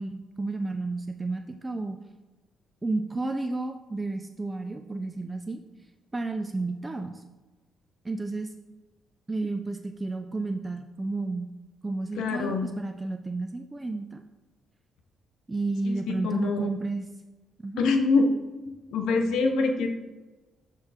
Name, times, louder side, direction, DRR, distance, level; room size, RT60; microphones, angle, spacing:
voice 1, 0.0-2.0 2.8-5.6 6.1-7.2 8.0-8.5 9.3-11.5 11.8-14.2 15.5-17.1 17.6-17.8, right 3 dB, 20° right, 6 dB, 0.5 m, -31 dB
voice 2, 12.2-12.7 15.8-16.0 16.2-16.7 17.8-18.3 18.6-19.9, left 3 dB, 85° left, 5 dB, 0.9 m, -25 dB
7.1 x 4.6 x 4.9 m, 1.2 s
cardioid pair, 90°, 0 cm